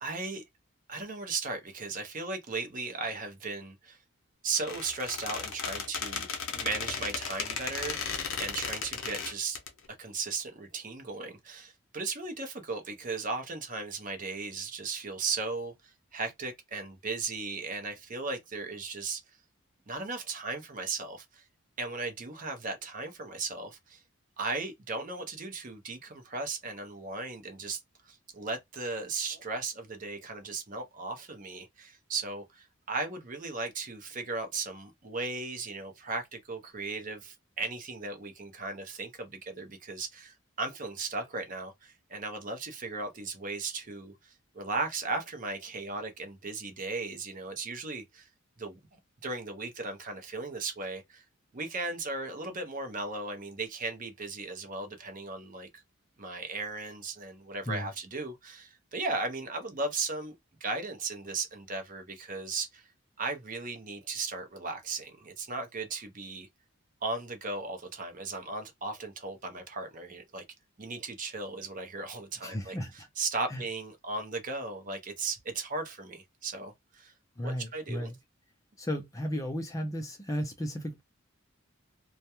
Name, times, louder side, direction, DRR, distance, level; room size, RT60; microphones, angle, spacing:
voice 1, 0.0-0.4 0.9-4.0 4.4-6.3 6.5-9.6 10.0-19.2 19.9-21.4 21.8-24.0 24.4-27.8 28.1-48.3 48.6-51.2 51.5-55.8 56.2-62.9 63.2-66.5 67.0-70.4 70.8-77.1 77.4-78.1, right 3 dB, 40° right, 0.6 m, -36 dB
Squeak, 4.6-9.7, left 6 dB, 70° left, 0.6 m, -35 dB
voice 2, 72.4-73.1 73.5-73.6 77.4-78.2 78.8-81.0, equal, 15° left, 0.4 m, -34 dB
2.2 x 2.1 x 2.8 m
head